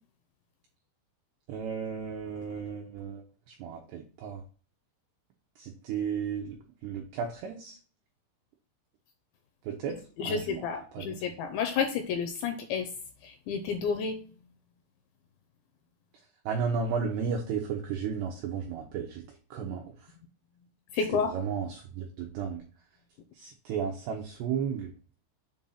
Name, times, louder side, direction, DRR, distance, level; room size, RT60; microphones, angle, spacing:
voice 1, 1.5-4.4 5.6-6.6 6.8-7.8 9.6-11.2 16.5-20.1 21.0-22.6 23.3-24.9, right 6 dB, 85° right, 1 dB, 2.3 m, -34 dB
voice 2, 10.2-12.9 13.5-14.2 21.0-21.3, left 6 dB, 80° left, 4 dB, 2.7 m, -30 dB
7.6 x 2.6 x 5.5 m, 0.40 s
omnidirectional pair, 5.8 m